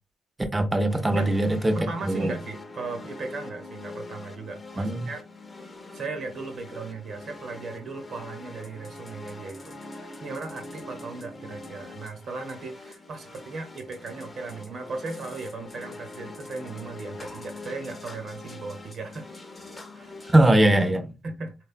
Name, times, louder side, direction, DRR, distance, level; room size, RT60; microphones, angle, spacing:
voice 1, 0.5-1.8 2.0-2.3 4.8-5.1 20.3-21.1, right 1 dB, 15° right, 0.6 m, -21 dB
sound 1, 0.9-20.4, left 2 dB, 25° left, 0.6 m, -43 dB
voice 2, 1.7-5.3 5.9-19.3 19.9-20.3 21.2-21.6, right 3 dB, 60° right, 0.9 m, -37 dB
3.4 x 2.2 x 2.4 m
cardioid pair, 90°, 0 cm